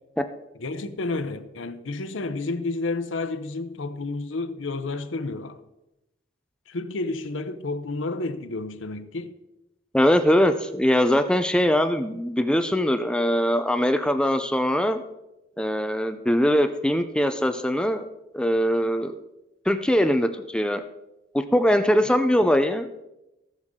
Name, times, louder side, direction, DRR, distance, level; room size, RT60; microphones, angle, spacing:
voice 1, 0.6-5.6 6.7-9.4, left 3 dB, 85° left, 0.8 m, -30 dB
voice 2, 9.9-15.0 15.6-18.1 18.3-19.1 19.7-20.8 21.3-22.9, equal, 5° left, 0.5 m, -22 dB
18.0 x 6.4 x 3.7 m
head